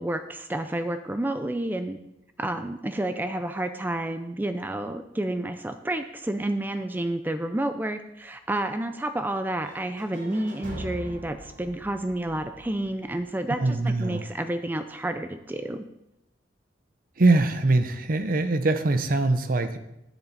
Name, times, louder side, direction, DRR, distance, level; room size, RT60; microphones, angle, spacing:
voice 1, 0.0-2.0 2.4-15.8, right 1 dB, 10° right, 8 dB, 0.4 m, -30 dB
sound 1, 9.6-13.5, equal, 80° right, 2.9 m, -42 dB
voice 2, 13.6-14.2 17.2-19.8, right 2 dB, 50° right, 9 dB, 0.7 m, -22 dB
10.5 x 7.2 x 4.0 m, 0.87 s
head